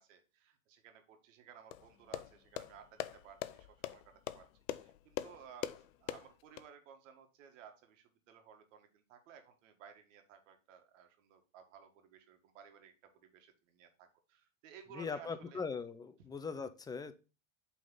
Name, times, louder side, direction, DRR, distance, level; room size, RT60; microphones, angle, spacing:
voice 1, 0.0-4.5 4.8-15.6, right 8 dB, 70° right, 5 dB, 1.8 m, -57 dB
sound 1, 1.7-6.6, left 13 dB, 75° left, 0.7 m, -43 dB
voice 2, 14.9-17.1, left 5 dB, 10° left, 11 dB, 0.4 m, -40 dB
8.4 x 3.8 x 3.9 m, 0.32 s
supercardioid pair, 120°, 39 cm